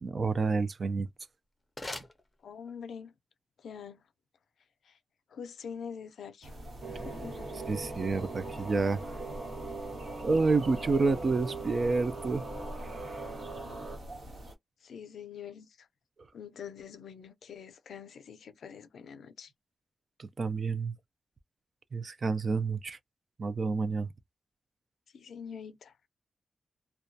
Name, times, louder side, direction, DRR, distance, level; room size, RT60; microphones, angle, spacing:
voice 1, 0.0-1.1 7.7-9.0 10.2-12.4 12.8-13.2 20.2-21.0 21.9-23.0 23.4-24.1, right 4 dB, 45° right, 0.3 m, -29 dB
sound 1, 1.0-3.0, left 2 dB, 15° left, 0.5 m, -45 dB
voice 2, 2.4-3.2 3.6-4.0 4.8-5.0 5.3-6.5 6.9-7.5 14.8-15.9 16.3-19.5 25.1-26.1, left 7 dB, 90° left, 0.4 m, -45 dB
sound 2, 6.4-14.6, equal, 85° right, 1.2 m, -45 dB
sound 3, 6.8-14.0, right 3 dB, 65° right, 1.2 m, -41 dB
2.2 x 2.1 x 2.6 m
wide cardioid pair, 140°, 0 cm